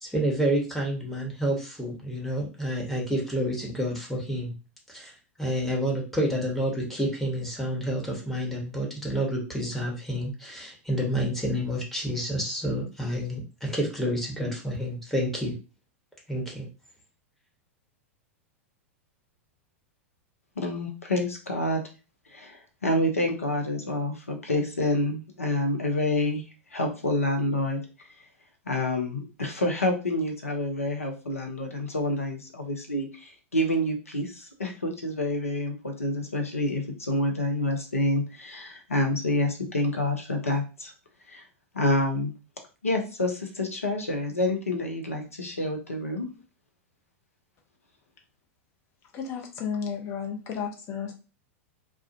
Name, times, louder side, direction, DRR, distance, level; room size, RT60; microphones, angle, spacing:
voice 1, 0.0-4.5 4.9-15.5 16.3-16.7, equal, 5° left, -2 dB, 1.0 m, -29 dB
voice 2, 20.6-21.8 22.3-26.4 26.7-28.3 28.7-40.9 41.3-41.4 41.7-42.3 42.8-46.3, left 1 dB, 85° left, 3 dB, 0.6 m, -28 dB
voice 3, 49.1-51.1, left 6 dB, 40° left, 2 dB, 0.7 m, -33 dB
2.3 x 2.2 x 2.6 m, 0.33 s
figure-of-eight pair, 95°, 7 cm